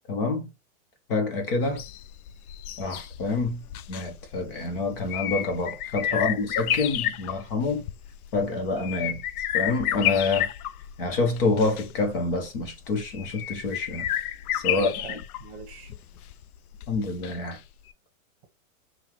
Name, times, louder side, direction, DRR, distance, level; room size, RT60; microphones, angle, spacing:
voice 1, 0.1-0.5 1.1-1.8 2.8-3.6 3.9-7.9 8.3-9.2 9.5-10.5 11.0-14.1 14.5-15.2 16.9-17.6, left 3 dB, 40° left, 0.9 m, -27 dB
sound 1, 1.6-17.6 17.9-18.0, left 12 dB, 75° left, 0.5 m, -32 dB
voice 2, 6.1-6.4 14.6-15.9, right 5 dB, 45° right, 1.2 m, -39 dB
5.6 x 2.4 x 3.0 m
supercardioid pair, 175°, 45 cm